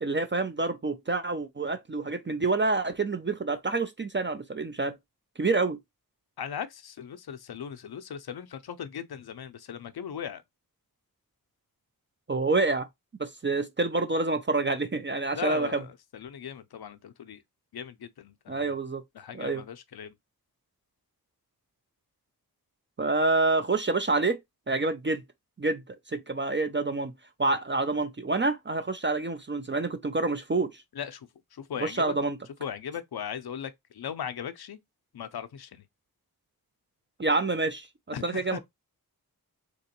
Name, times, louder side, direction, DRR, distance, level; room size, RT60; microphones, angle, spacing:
voice 1, 0.0-5.0 5.4-5.8 12.3-12.9 13.2-15.7 18.5-19.0 19.3-19.6 23.0-24.4 24.7-25.2 25.6-27.1 27.4-30.8 31.8-32.4 37.2-37.9 38.2-38.6, right 3 dB, 30° right, 0.4 m, -27 dB
voice 2, 6.4-10.4 15.3-17.4 17.7-18.8 19.1-20.1 30.9-32.1 32.6-34.8 35.1-35.8 38.1-38.6, left 8 dB, 85° left, 0.5 m, -38 dB
3.5 x 2.9 x 2.8 m
wide cardioid pair, 60°, 37 cm